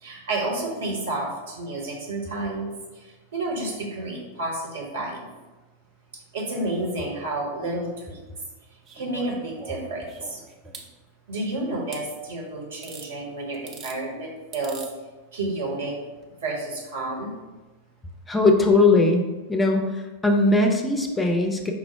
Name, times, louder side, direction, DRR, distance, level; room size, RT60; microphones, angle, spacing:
voice 1, 0.0-5.3 6.3-8.2 8.9-10.4 11.3-14.8 15.3-16.0 16.4-17.3, right 2 dB, 60° right, -2 dB, 1.1 m, -30 dB
sound 1, 8.8-10.9 11.9-12.0 12.8-13.1 13.5-14.0 14.5-14.9 16.2-16.3, right 4 dB, 30° right, 0.6 m, -42 dB
voice 2, 18.3-19.2 19.5-21.7, left 2 dB, 10° left, 2 dB, 0.5 m, -20 dB
5.1 x 2.0 x 4.4 m, 1.2 s
figure-of-eight pair, 90°, 0 cm